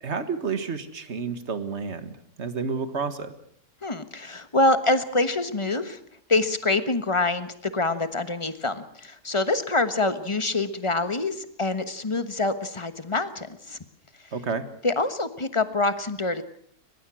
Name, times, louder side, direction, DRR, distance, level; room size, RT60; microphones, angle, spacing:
voice 1, 0.0-3.3 14.3-14.6, right 5 dB, 45° right, 11 dB, 1.9 m, -30 dB
voice 2, 3.8-6.0 6.3-13.8 14.8-16.4, left 2 dB, 20° left, 11 dB, 1.2 m, -25 dB
23.5 x 20.5 x 6.3 m, 0.63 s
omnidirectional pair, 1.7 m